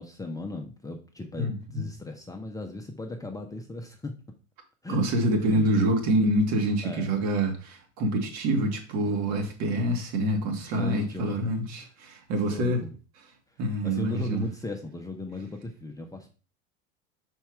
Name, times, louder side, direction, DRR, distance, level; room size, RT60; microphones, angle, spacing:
voice 1, 0.0-4.2 4.8-5.0 5.5-5.7 6.8-7.1 10.7-11.4 11.8-11.9 12.5-13.0 13.8-16.3, left 2 dB, 10° left, 0.8 m, -37 dB
voice 2, 1.4-1.8 4.9-12.8 13.6-14.4, right 1 dB, 45° right, 1.9 m, -26 dB
5.7 x 4.5 x 4.7 m
figure-of-eight pair, 80°, 37 cm